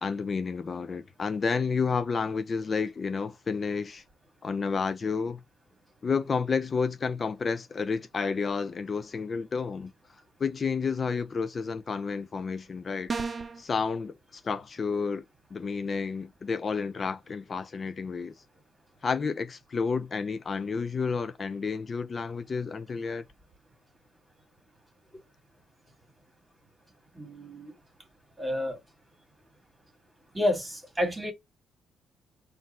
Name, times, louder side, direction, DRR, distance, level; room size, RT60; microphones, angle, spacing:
voice 1, 0.0-4.0 4.4-5.4 6.0-9.9 10.4-13.1 13.6-15.2 15.5-18.4 19.0-23.3, left 5 dB, 40° left, 0.4 m, -30 dB
sound 1, 13.1-13.6, right 4 dB, 35° right, 0.7 m, -32 dB
voice 2, 27.1-27.7 28.4-28.8 30.3-31.3, left 1 dB, 15° right, 1.8 m, -29 dB
4.4 x 2.5 x 4.0 m
cardioid pair, 90°, 0 cm